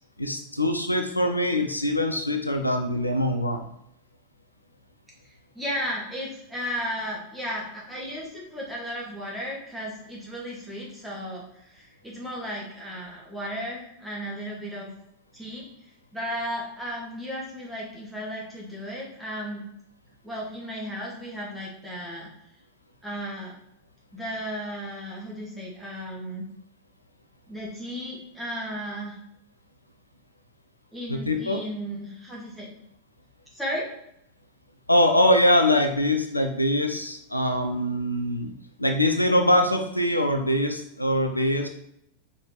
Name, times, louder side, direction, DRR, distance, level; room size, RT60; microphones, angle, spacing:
voice 1, 0.2-3.7 31.1-31.6 34.9-38.5 38.8-41.7, left 1 dB, 85° left, 5 dB, 0.6 m, -23 dB
voice 2, 5.2-14.9 15.3-15.6 16.1-19.6 20.2-22.3 23.0-23.5 24.1-26.4 27.5-29.2 30.9-32.8 33.5-33.9, equal, 5° right, -4 dB, 2.2 m, -34 dB
5.1 x 4.3 x 4.4 m, 0.77 s
figure-of-eight pair, 90°, 0 cm